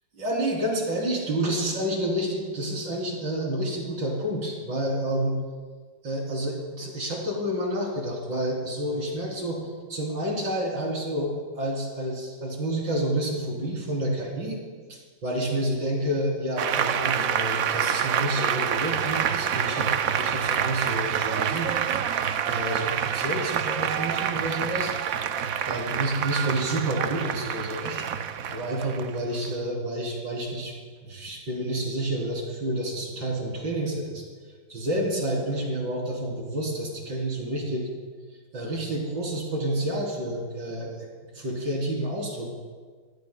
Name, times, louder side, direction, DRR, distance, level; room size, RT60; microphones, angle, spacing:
voice 1, 0.2-5.4 6.0-14.6 14.9-19.9 20.2-21.7 22.5-24.9 25.7-28.0 28.5-30.7 31.0-34.2 34.7-37.9 38.5-42.5, right 1 dB, 90° right, -3 dB, 4.3 m, -29 dB
Applause, 16.6-29.6, right 8 dB, 65° right, 0.9 m, -27 dB
25.5 x 15.5 x 2.3 m, 1.5 s
omnidirectional pair, 2.0 m